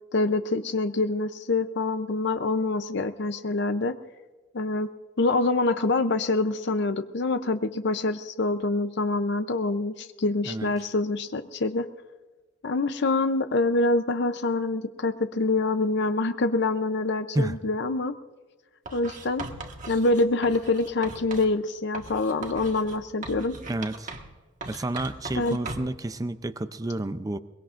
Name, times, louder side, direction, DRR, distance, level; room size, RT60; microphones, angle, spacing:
voice 1, 0.1-4.0 4.5-4.9 5.2-11.9 12.6-18.1 18.9-19.5 19.9-23.6 25.3-25.6, left 2 dB, 65° left, 10 dB, 0.6 m, -25 dB
Writing, 18.9-21.5 21.9-24.4 24.6-26.0, right 2 dB, 40° right, 1.5 m, -39 dB
voice 2, 23.7-24.1 24.7-27.4, right 2 dB, 20° right, 11 dB, 0.5 m, -30 dB
23.0 x 21.5 x 2.5 m, 1.3 s
head